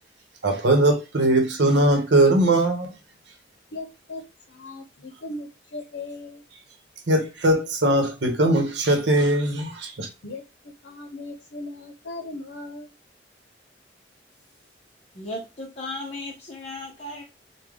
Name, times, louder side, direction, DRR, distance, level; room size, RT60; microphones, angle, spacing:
voice 1, 0.4-3.0 7.1-10.1, right 1 dB, 75° right, 0.9 m, -20 dB
voice 2, 3.7-4.2 4.5-6.4 10.2-10.4 10.8-12.9, left 2 dB, 90° left, 0.7 m, -37 dB
voice 3, 15.1-17.2, left 1 dB, 35° left, 0.6 m, -35 dB
3.4 x 2.2 x 3.5 m
head